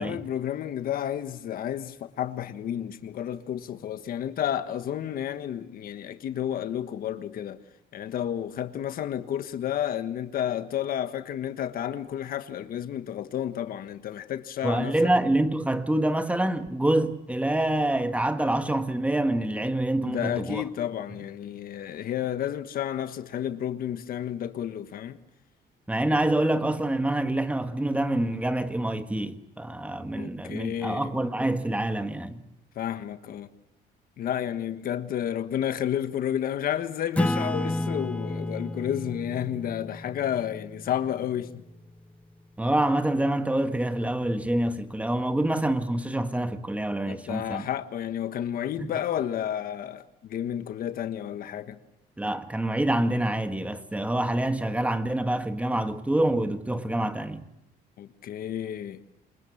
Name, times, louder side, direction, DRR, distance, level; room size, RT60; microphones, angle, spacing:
voice 1, 0.0-7.6 7.9-15.1 20.0-25.2 30.1-31.1 32.7-33.5 34.2-41.6 47.1-51.8 58.0-59.0, left 10 dB, 60° left, 1.4 m, -31 dB
voice 2, 14.6-20.6 25.9-32.4 42.6-47.7 48.8-48.9 52.2-57.4, right 1 dB, 10° right, 1.7 m, -26 dB
Acoustic guitar / Strum, 37.2-42.1, left 1 dB, 5° left, 1.0 m, -32 dB
27.5 x 21.5 x 7.2 m
cardioid pair, 110°, 17 cm